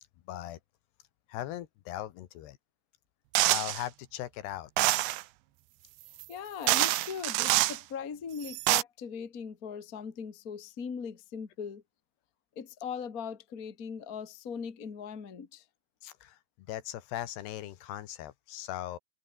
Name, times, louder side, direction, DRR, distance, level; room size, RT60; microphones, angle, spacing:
voice 1, 0.3-0.6 1.3-2.6 3.5-4.7 16.0-16.4 16.7-19.0, left 13 dB, 75° left, 3.3 m, -39 dB
sound 1, 3.4-3.8 4.8-5.2 6.2-6.3 6.7-7.8 8.4-8.8, right 19 dB, 85° right, 3.0 m, -26 dB
voice 2, 6.3-11.8 12.6-15.6, left 6 dB, 30° left, 1.7 m, -40 dB
omnidirectional pair, 4.8 m